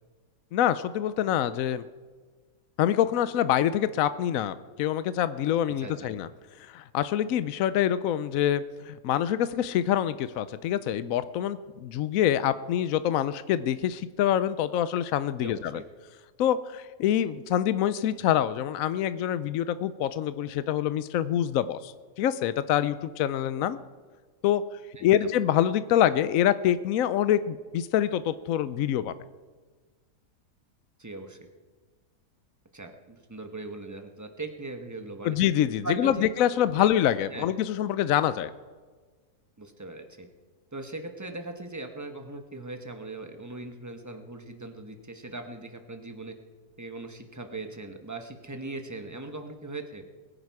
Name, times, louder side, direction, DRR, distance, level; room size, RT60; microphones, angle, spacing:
voice 1, 0.5-1.8 2.8-6.3 6.6-15.6 16.4-23.8 24.4-24.6 25.0-29.1 35.2-38.5, left 11 dB, 70° left, 14 dB, 0.9 m, -26 dB
voice 2, 5.8-6.1 15.4-15.8 25.0-25.3 31.0-31.4 32.7-35.4 35.8-36.2 36.8-36.9 37.3-37.5 39.6-40.3 40.7-46.3 46.8-50.0, right 2 dB, 10° right, 5 dB, 1.1 m, -39 dB
21.5 x 10.5 x 4.8 m, 1.4 s
omnidirectional pair, 1.7 m